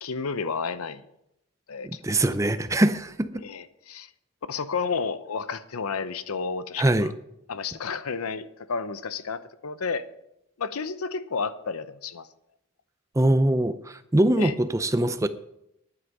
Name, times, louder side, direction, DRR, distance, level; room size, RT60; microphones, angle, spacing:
voice 1, 0.0-1.0 1.7-2.0 3.4-4.1 4.5-7.1 7.5-10.1 10.6-12.3 14.4-14.5, left 5 dB, 90° left, 0.7 m, -31 dB
voice 2, 1.8-3.4 6.8-7.1 13.2-15.3, right 1 dB, 15° right, 0.4 m, -23 dB
11.0 x 9.9 x 5.4 m
head